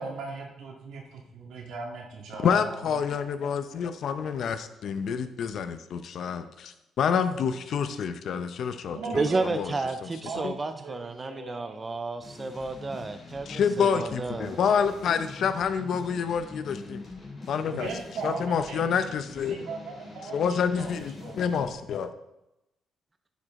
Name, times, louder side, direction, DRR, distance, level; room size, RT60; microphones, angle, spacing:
voice 1, 0.0-2.9 8.9-9.4 10.2-11.9 17.6-19.1 19.4-21.7, right 3 dB, 80° right, 0 dB, 1.9 m, -39 dB
voice 2, 2.4-9.2 9.5-9.7 10.0-10.1 10.4-10.5 13.5-17.0 17.5-17.9 18.2-19.6 20.3-22.1, left 7 dB, 65° left, 10 dB, 0.6 m, -28 dB
voice 3, 9.1-14.6, right 3 dB, 25° right, 9 dB, 0.4 m, -31 dB
sound 1, 12.2-21.7, left 3 dB, 35° left, 3.2 m, -44 dB
10.5 x 5.2 x 3.7 m, 0.90 s
cardioid pair, 90°, 0 cm